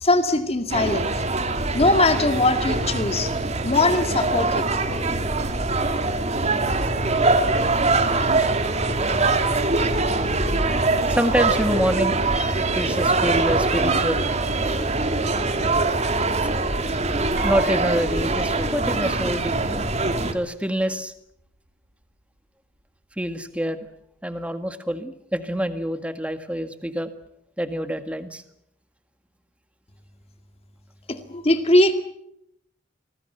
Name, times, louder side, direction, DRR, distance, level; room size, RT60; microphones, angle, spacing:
voice 1, 0.0-1.1 1.7-3.3 3.6-4.6 31.1-31.9, left 2 dB, 35° left, 7 dB, 2.2 m, -20 dB
sound 1, 0.7-20.3, right 3 dB, 35° right, 2.3 m, -23 dB
voice 2, 5.7-6.8 8.1-8.7 11.1-12.2 12.7-14.2 16.4-17.0 17.3-19.8 20.2-21.1 23.1-23.8 24.2-27.1 27.6-28.4, equal, 5° right, 9 dB, 1.8 m, -27 dB
Piano, 17.4-19.2 19.5-19.6 20.8-20.9 21.2-21.4, right 1 dB, 60° right, 5.9 m, -40 dB
26.0 x 20.0 x 8.1 m, 0.76 s
head